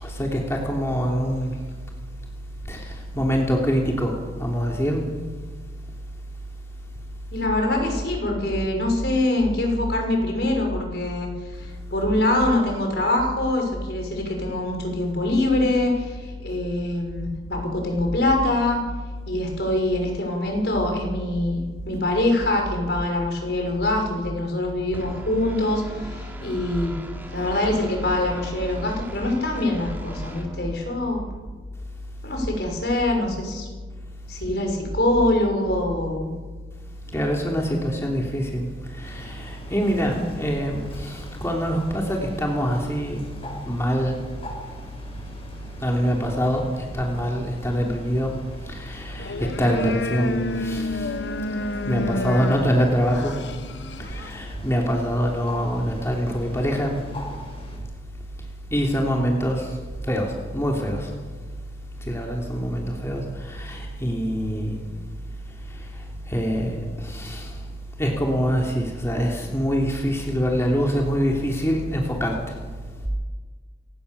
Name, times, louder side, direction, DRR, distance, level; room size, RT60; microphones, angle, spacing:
voice 1, 0.0-1.5 2.7-2.8 3.1-4.1 4.4-5.0 37.1-38.7 39.0-43.2 43.6-44.2 45.8-46.6 46.9-48.3 48.7-50.4 50.6-51.1 51.9-53.3 54.0-56.9 58.7-59.6 60.1-61.1 62.0-64.8 66.3-67.5 68.0-72.3, equal, 15° left, 0 dB, 3.2 m, -24 dB
voice 2, 7.3-18.8 19.3-27.0 27.3-31.2 32.2-33.7 34.3-36.4, left 1 dB, 65° left, 2 dB, 6.1 m, -24 dB
sound 1, 24.9-31.4, equal, 10° right, 3.2 m, -39 dB
Bird, 39.0-57.8, left 1 dB, 35° left, 7.3 m, -43 dB
sound 2, 49.1-54.4, left 2 dB, 80° left, 1.0 m, -30 dB
29.5 x 18.5 x 7.1 m, 1.5 s
head